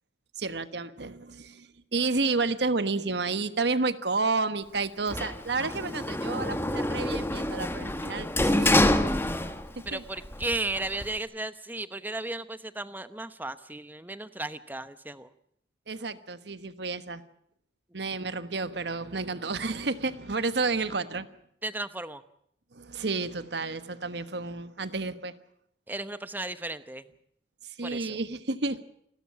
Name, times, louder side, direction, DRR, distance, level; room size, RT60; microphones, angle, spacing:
voice 1, 0.4-9.0 9.8-10.0 15.9-17.2 17.9-21.3 22.7-25.4 27.6-28.8, right 3 dB, 65° right, 12 dB, 1.2 m, -31 dB
Sliding door, 5.1-9.9 10.2-11.2, left 1 dB, 15° left, 1.2 m, -27 dB
voice 2, 9.9-15.3 21.6-22.2 25.9-27.1 27.8-28.2, right 2 dB, 10° right, 13 dB, 0.9 m, -35 dB
28.5 x 13.0 x 8.6 m, 0.71 s
head